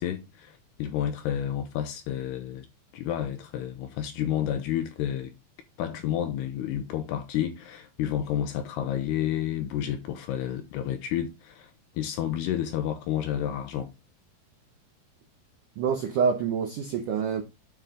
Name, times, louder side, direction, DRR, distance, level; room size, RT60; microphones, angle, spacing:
voice 1, 0.0-2.7 2.9-5.3 5.8-11.7 12.0-13.9, left 10 dB, 75° left, 2.6 m, -30 dB
voice 2, 15.8-17.4, right 6 dB, 80° right, 1.8 m, -26 dB
9.5 x 5.6 x 3.7 m
omnidirectional pair, 5.5 m